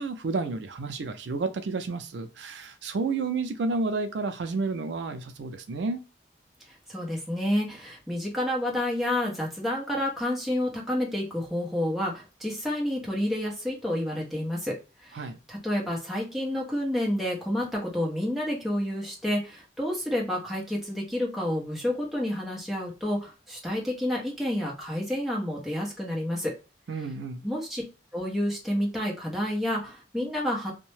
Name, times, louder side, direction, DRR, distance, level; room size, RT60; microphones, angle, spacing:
voice 1, 0.0-6.0 15.1-15.4 26.9-27.4, right 3 dB, 80° right, 0.4 m, -31 dB
voice 2, 6.9-14.7 15.0-26.5 27.4-27.8 28.1-30.7, left 1 dB, ahead, 0.9 m, -29 dB
2.7 x 2.1 x 3.1 m
head